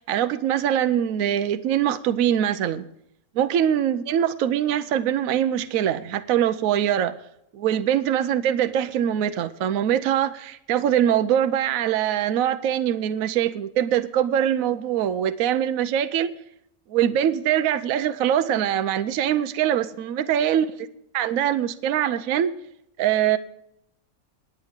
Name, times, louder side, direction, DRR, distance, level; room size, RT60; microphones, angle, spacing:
voice 1, 0.0-2.9 3.3-7.1 7.5-16.4 16.9-20.7 21.1-22.5 23.0-23.4, right 10 dB, 70° right, 11 dB, 1.0 m, -23 dB
19.5 x 9.0 x 3.7 m, 0.76 s
omnidirectional pair, 1.6 m